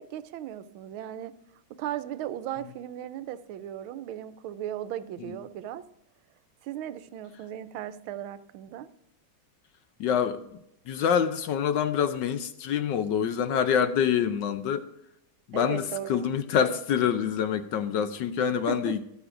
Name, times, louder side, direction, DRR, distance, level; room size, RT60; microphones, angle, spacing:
voice 1, 0.0-1.3 1.8-5.8 6.6-8.9 15.5-16.3 18.7-18.9, right 11 dB, 85° right, 13 dB, 1.5 m, -36 dB
voice 2, 10.0-10.4 10.9-14.9 15.5-19.0, left 8 dB, 70° left, 10 dB, 1.2 m, -26 dB
13.5 x 11.5 x 2.5 m, 0.80 s
omnidirectional pair, 2.2 m